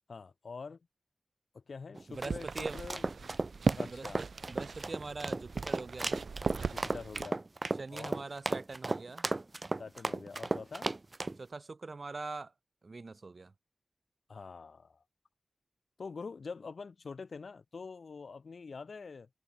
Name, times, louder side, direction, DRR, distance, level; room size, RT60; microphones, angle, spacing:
voice 1, 0.1-0.8 1.5-3.3 3.8-4.2 6.6-7.4 7.9-8.2 9.8-10.9 14.3-15.0 16.0-19.3, left 4 dB, 80° left, 5.0 m, -45 dB
sound 1, 1.9-11.4, right 2 dB, 35° right, 1.8 m, -35 dB
voice 2, 2.1-2.8 3.6-6.2 7.8-9.3 11.4-12.5 12.8-13.5, right 3 dB, 55° right, 3.0 m, -43 dB
sound 2, 2.1-7.2, right 4 dB, 85° right, 0.6 m, -37 dB
wide cardioid pair, 95°, 0 cm